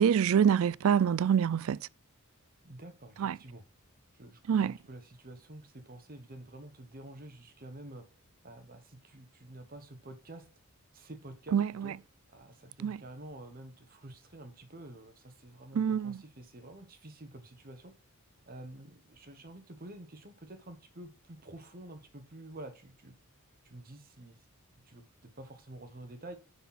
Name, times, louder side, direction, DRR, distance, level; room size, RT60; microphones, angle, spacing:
voice 1, 0.0-1.8 3.2-3.4 4.5-4.7 11.5-11.9 12.8-13.0 15.7-16.2, right 8 dB, 65° right, 0.3 m, -26 dB
voice 2, 2.6-3.6 4.2-8.0 8.4-10.5 10.9-12.0 12.3-17.9 18.5-23.1 23.6-24.4 24.8-26.4, right 1 dB, 40° right, 1.2 m, -49 dB
10.0 x 4.3 x 5.8 m
head